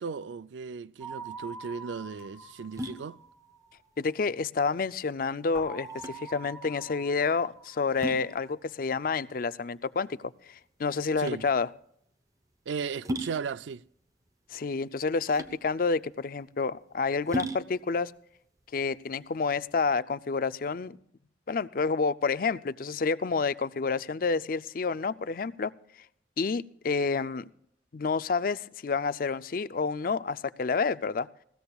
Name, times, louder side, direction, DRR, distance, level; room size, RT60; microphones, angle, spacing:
voice 1, 0.0-3.2 11.2-11.4 12.7-13.8, right 5 dB, 85° right, 0.4 m, -36 dB
sound 1, 1.0-3.9 5.5-8.4, right 3 dB, 5° left, 3.1 m, -45 dB
sound 2, 1.2-19.7, equal, 20° right, 0.8 m, -41 dB
voice 2, 4.0-10.2 10.5-11.7 14.5-18.1 18.7-21.0 21.5-25.7 26.4-27.4 27.9-31.3, left 4 dB, 50° left, 0.4 m, -29 dB
20.0 x 16.5 x 2.3 m
head